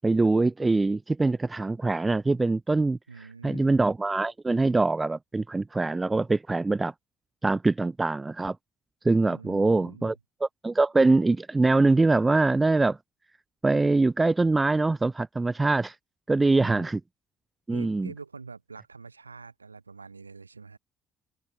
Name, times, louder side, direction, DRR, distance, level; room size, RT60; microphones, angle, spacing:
voice 1, 0.0-3.0 3.4-6.9 7.4-8.6 9.0-10.1 10.4-13.0 13.6-15.9 16.3-17.0 17.7-18.1, right 3 dB, 20° right, 0.4 m, -23 dB
voice 2, 3.1-3.7 9.2-10.1 16.4-16.9 17.7-20.8, right 4 dB, 90° right, 4.7 m, -45 dB
open air
figure-of-eight pair, 50°, 0 cm